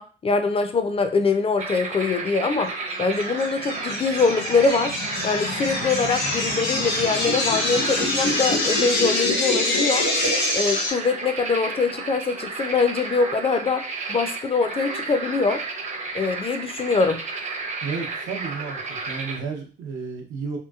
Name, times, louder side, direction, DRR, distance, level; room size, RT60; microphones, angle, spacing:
voice 1, 0.0-2.7 3.0-4.9 5.2-10.1 10.5-15.6 16.1-17.2, left 4 dB, 30° left, 7 dB, 0.4 m, -23 dB
sound 1, 1.6-19.4, right 4 dB, 35° right, 0.6 m, -32 dB
sound 2, 3.2-10.9, left 2 dB, 80° left, 1.2 m, -25 dB
voice 2, 17.8-20.6, right 5 dB, 85° right, 2 dB, 0.7 m, -32 dB
2.9 x 2.6 x 2.3 m, 0.37 s
cardioid pair, 90°, 20 cm